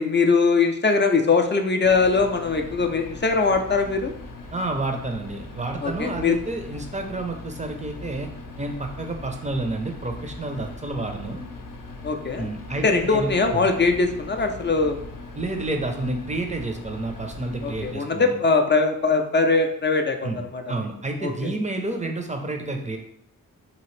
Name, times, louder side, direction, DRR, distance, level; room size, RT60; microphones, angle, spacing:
voice 1, 0.0-4.1 5.8-6.4 12.0-12.5 12.8-15.0 17.6-20.6 21.2-21.3, left 4 dB, 30° left, 5 dB, 0.4 m, -21 dB
sound 1, 1.8-17.9, left 3 dB, 65° left, 0.7 m, -40 dB
voice 2, 4.5-8.3 8.6-11.4 12.4-13.7 15.3-18.3 20.2-23.0, right 2 dB, 20° right, 3 dB, 0.5 m, -30 dB
2.8 x 2.5 x 3.1 m, 0.71 s
cardioid pair, 50°, 36 cm